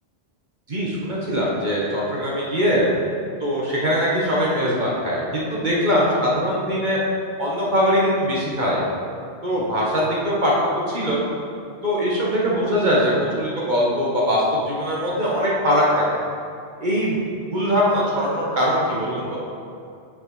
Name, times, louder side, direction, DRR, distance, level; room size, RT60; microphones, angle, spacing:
voice 1, 0.7-2.8 3.4-7.0 7.4-8.8 9.4-10.5 10.9-11.2 11.8-16.2 16.8-17.2 17.5-19.4, equal, 40° right, -5 dB, 1.1 m, -21 dB
8.0 x 6.0 x 3.1 m, 2.4 s
omnidirectional pair, 1.2 m